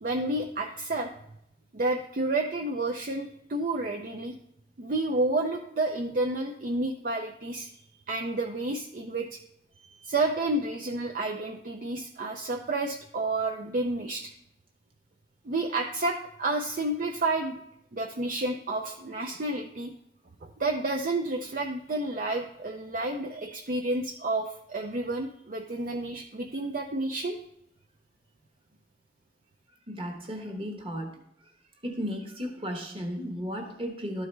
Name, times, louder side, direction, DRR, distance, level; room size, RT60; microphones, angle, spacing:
voice 1, 0.0-1.1 1.7-4.3 4.8-7.7 8.1-9.4 10.0-14.3 15.4-17.6 17.9-19.9 20.4-27.4, right 2 dB, 50° right, 2 dB, 0.5 m, -30 dB
voice 2, 29.9-31.5 31.8-34.3, equal, 30° right, 2 dB, 1.3 m, -35 dB
12.5 x 4.8 x 3.3 m, 0.75 s
head